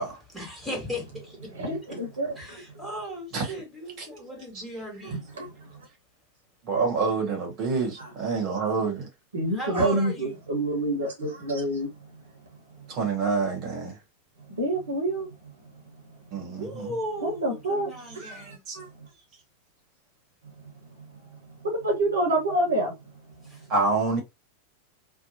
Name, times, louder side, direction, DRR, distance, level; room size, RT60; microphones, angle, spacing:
voice 1, 0.3-1.5 1.9-2.0 2.3-5.2 9.5-10.4 16.5-18.6 23.4-23.6, equal, ahead, 1.5 m, -36 dB
voice 2, 1.5-2.6 5.1-5.5 8.0-8.1 9.3-11.9 14.6-15.3 17.2-17.9 18.1-18.9 21.6-22.9, right 1 dB, 65° right, 1.0 m, -27 dB
voice 3, 6.7-9.1 12.9-13.9 16.3-16.9 18.7-18.8 23.7-24.2, right 4 dB, 40° right, 1.1 m, -27 dB
2.7 x 2.1 x 2.8 m
figure-of-eight pair, 90°, 0 cm